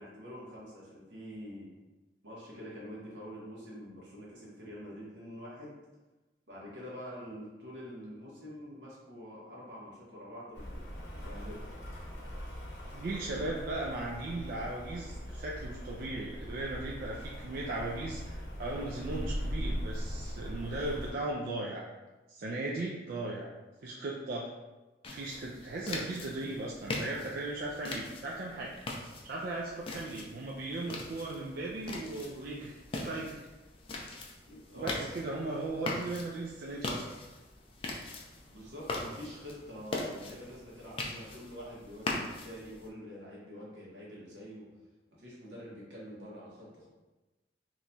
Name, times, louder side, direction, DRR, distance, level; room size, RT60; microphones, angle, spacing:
voice 1, 0.0-1.7 2.2-5.8 6.5-11.6 34.5-35.1 38.5-44.8 45.2-46.9, equal, 80° right, -5 dB, 1.2 m, -46 dB
Rain, 10.5-21.1, equal, 70° left, 0.8 m, -40 dB
voice 2, 12.9-21.8 22.3-23.5 23.8-24.5 25.1-28.8 29.2-33.4 34.7-37.1, right 2 dB, 55° right, -3 dB, 0.4 m, -37 dB
sound 1, 25.0-42.9, left 2 dB, 30° left, 0.4 m, -41 dB
3.0 x 2.2 x 3.9 m, 1.1 s
head